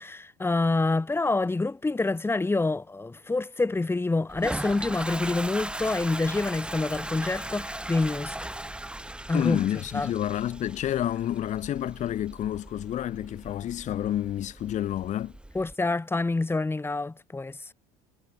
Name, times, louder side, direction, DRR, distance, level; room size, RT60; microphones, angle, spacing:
voice 1, 0.0-8.4 9.3-9.6 9.9-10.1 15.5-17.6, left 3 dB, 15° left, 3.4 m, -27 dB
Toilet flush, 4.3-15.7, right 1 dB, 5° right, 3.3 m, -38 dB
voice 2, 9.3-15.3, left 12 dB, 50° left, 2.7 m, -29 dB
hypercardioid pair, 75°, 16 cm